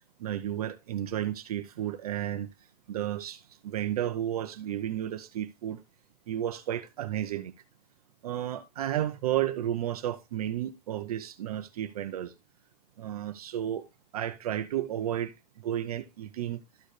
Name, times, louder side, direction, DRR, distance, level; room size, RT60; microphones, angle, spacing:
voice 1, 0.2-2.5 2.9-5.8 6.3-7.5 8.2-12.3 13.0-13.9 14.1-16.6, right 11 dB, 35° right, 0.6 m, -32 dB
13.0 x 4.5 x 3.2 m
supercardioid pair, 175°, 34 cm